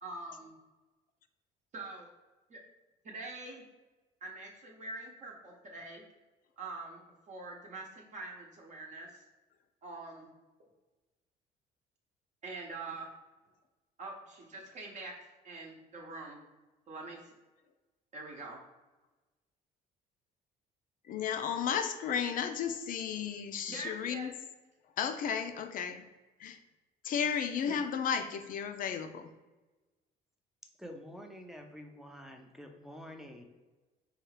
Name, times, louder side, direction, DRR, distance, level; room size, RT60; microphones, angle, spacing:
voice 1, 0.0-0.5 1.7-2.1 2.5-2.6 3.0-3.6 4.2-6.0 6.6-7.0 7.3-9.2 9.8-10.3 12.4-13.1 14.0-16.4 16.9-17.3 18.1-18.6 23.7-24.3, right 3 dB, 45° right, -1 dB, 0.8 m, -44 dB
voice 2, 21.0-24.3 24.8-26.0 26.4-26.6 27.0-29.3, left 7 dB, 55° left, 8 dB, 0.4 m, -34 dB
voice 3, 30.8-33.4, equal, ahead, 3 dB, 0.5 m, -48 dB
4.6 x 2.3 x 3.2 m, 1.2 s
cardioid pair, 110°, 17 cm